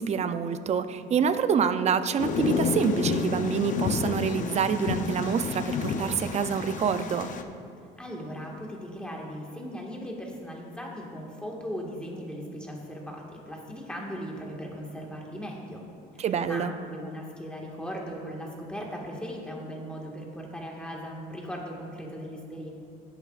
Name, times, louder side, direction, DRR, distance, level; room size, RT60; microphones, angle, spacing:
voice 1, 0.0-7.3 16.2-16.7, right 7 dB, 40° right, 11 dB, 0.5 m, -27 dB
Thunder, 2.2-7.4, left 5 dB, 50° left, 0.7 m, -30 dB
voice 2, 8.0-15.8 16.1-22.7, equal, 5° left, -2 dB, 1.8 m, -38 dB
17.0 x 8.0 x 2.5 m, 2.5 s
cardioid pair, 110°, 17 cm